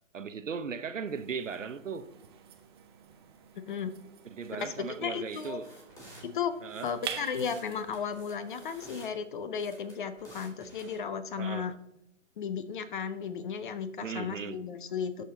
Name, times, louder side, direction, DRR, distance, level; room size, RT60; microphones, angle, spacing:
voice 1, 0.1-2.1 4.3-5.7 6.6-6.9 11.4-11.7 14.0-14.6, right 6 dB, 80° right, 0.8 m, -37 dB
sound 1, 1.1-8.8, right 8 dB, 20° right, 0.6 m, -47 dB
voice 2, 3.5-3.9 4.5-5.6 6.2-6.6 6.8-11.8 12.4-15.2, left 6 dB, 40° left, 0.8 m, -35 dB
sound 2, 5.3-6.2 6.7-7.7 7.9-9.1 9.5-11.0, equal, 10° left, 2.6 m, -52 dB
12.5 x 4.4 x 4.0 m
figure-of-eight pair, 130°, 38 cm